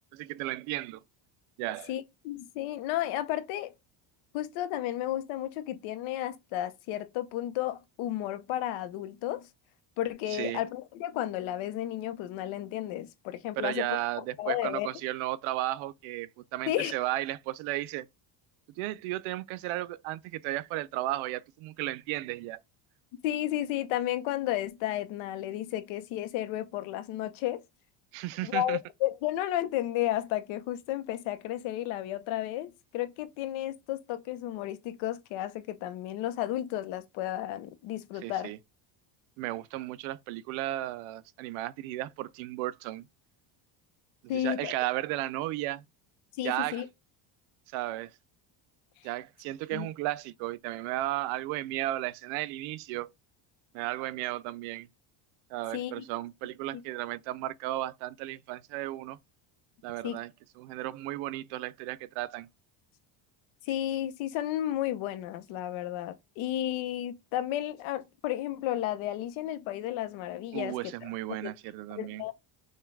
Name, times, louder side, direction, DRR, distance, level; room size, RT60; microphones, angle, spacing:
voice 1, 0.1-1.0 1.6-1.9 10.3-10.6 13.6-18.1 18.8-22.6 28.1-28.8 38.2-38.6 39.4-43.1 44.3-45.8 46.4-46.8 47.7-48.2 49.0-53.1 53.7-54.9 55.5-59.2 59.8-62.5 70.5-72.2, right 16 dB, 80° right, 0.6 m, -34 dB
voice 2, 1.9-3.7 4.3-9.5 10.0-13.9 14.2-14.9 16.7-16.9 23.2-27.6 28.4-38.5 44.3-44.7 46.4-46.9 49.7-49.9 55.7-56.0 60.0-60.2 63.7-70.7 71.4-71.5 71.9-72.3, left 13 dB, 70° left, 0.9 m, -33 dB
6.6 x 2.3 x 3.2 m
cardioid pair, 165°, 48 cm